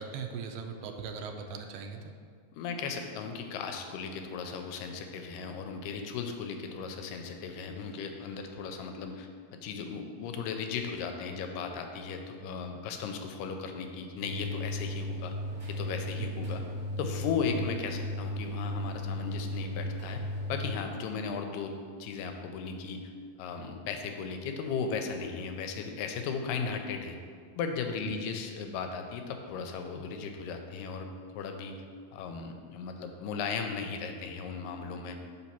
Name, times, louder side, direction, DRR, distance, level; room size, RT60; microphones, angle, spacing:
voice 1, 0.0-2.1 16.2-16.4 28.1-28.2, right 6 dB, 80° right, 5 dB, 2.1 m, -39 dB
voice 2, 2.5-15.3 15.7-16.6 17.0-20.2 20.5-23.1 23.4-27.2 27.6-31.8 32.1-35.2, left 5 dB, 90° left, 5 dB, 2.2 m, -36 dB
sound 1, 14.2-20.7, left 1 dB, 40° right, 1.6 m, -36 dB
5.2 x 4.1 x 5.8 m, 2.1 s
omnidirectional pair, 3.8 m